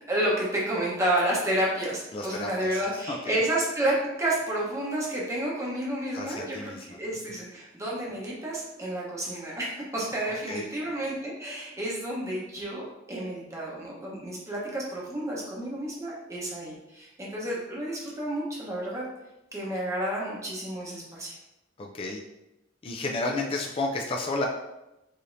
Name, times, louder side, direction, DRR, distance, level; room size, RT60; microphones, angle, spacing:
voice 1, 0.1-19.0 19.5-21.4, right 1 dB, 15° right, -4 dB, 0.9 m, -30 dB
voice 2, 2.1-2.8 3.1-3.4 6.1-7.0 7.3-7.4 10.5-10.7 21.8-22.2 22.8-24.5, left 2 dB, 30° left, 0 dB, 0.4 m, -32 dB
4.9 x 2.8 x 2.6 m, 0.93 s
head